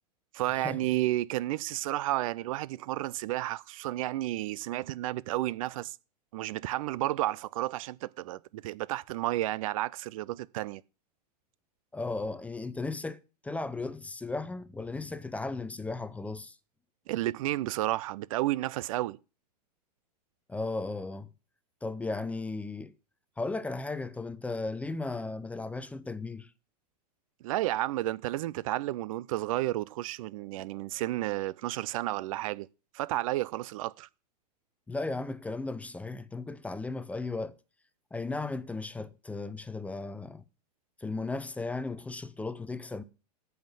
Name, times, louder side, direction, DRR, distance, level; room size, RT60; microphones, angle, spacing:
voice 1, 0.3-6.0 6.3-10.8 17.1-19.2 27.4-32.7 32.9-34.1, right 16 dB, 55° right, 0.5 m, -32 dB
voice 2, 11.9-16.6 20.5-21.3 21.8-22.9 23.4-26.5 34.9-37.5 38.1-40.4 41.0-43.0, left 3 dB, 5° left, 0.6 m, -36 dB
8.6 x 5.6 x 7.6 m
hypercardioid pair, 110°, 21 cm